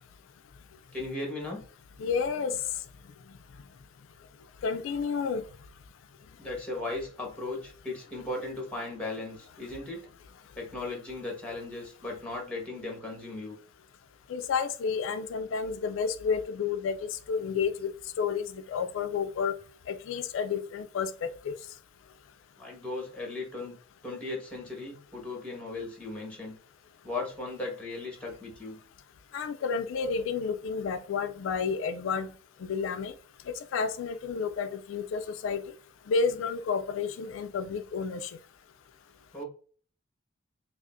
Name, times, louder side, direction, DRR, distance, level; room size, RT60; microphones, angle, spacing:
voice 1, 0.9-1.6 6.4-10.1 10.5-13.6 22.6-23.8 24.0-26.6 27.0-28.8 39.3-39.4, left 2 dB, 5° left, 1.2 m, -37 dB
voice 2, 2.0-2.6 4.6-5.4 14.3-17.0 17.3-17.9 18.2-19.5 19.9-21.5 29.3-32.3 32.6-33.1 33.7-35.6 36.1-38.3, left 5 dB, 70° left, 0.3 m, -30 dB
4.9 x 2.0 x 2.5 m
head